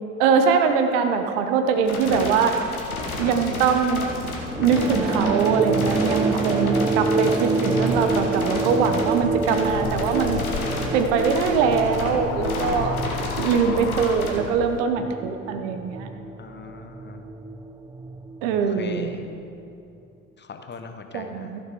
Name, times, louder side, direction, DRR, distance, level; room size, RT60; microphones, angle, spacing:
voice 1, 0.2-2.8 3.2-4.1 4.6-10.4 10.9-13.0 13.4-16.1 18.4-19.2 21.1-21.6, right 6 dB, 65° right, 7 dB, 1.0 m, -22 dB
sound 1, 1.8-14.3, left 2 dB, 90° left, 1.5 m, -32 dB
sound 2, 4.5-19.4, right 3 dB, 10° right, 0.4 m, -27 dB
sound 3, 9.4-14.8, left 9 dB, 65° left, 0.7 m, -33 dB
voice 2, 16.4-17.2 18.6-19.3 20.4-21.5, left 5 dB, 25° left, 6 dB, 1.1 m, -40 dB
15.0 x 6.6 x 4.8 m, 2.6 s
figure-of-eight pair, 60°, 42 cm